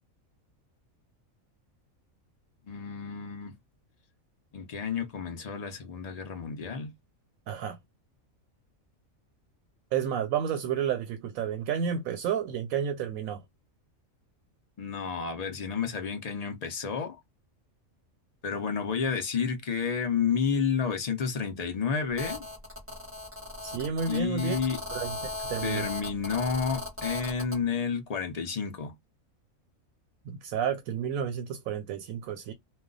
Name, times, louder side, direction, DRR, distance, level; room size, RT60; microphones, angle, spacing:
voice 1, 2.7-3.5 4.5-6.9 14.8-17.2 18.4-22.4 24.1-24.8 25.6-28.9, left 6 dB, 45° left, 0.5 m, -30 dB
voice 2, 7.5-7.8 9.9-13.4 23.6-24.6 24.9-25.9 30.2-32.5, right 8 dB, 85° right, 1.0 m, -31 dB
Telephone, 22.2-27.6, left 2 dB, 10° right, 0.7 m, -37 dB
2.3 x 2.2 x 3.8 m
omnidirectional pair, 1.4 m